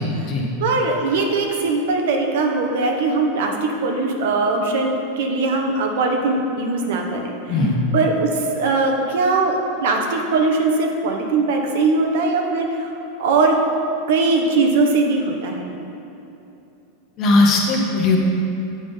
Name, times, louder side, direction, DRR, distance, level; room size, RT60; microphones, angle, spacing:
voice 1, 0.0-0.5 7.5-7.7 17.2-18.2, left 2 dB, 35° left, 0 dB, 1.0 m, -18 dB
voice 2, 0.6-7.6 7.9-12.9 13.2-13.6 14.1-15.7, right 3 dB, 70° right, 2 dB, 0.9 m, -20 dB
8.6 x 3.6 x 5.5 m, 2.8 s
supercardioid pair, 155°, 0 cm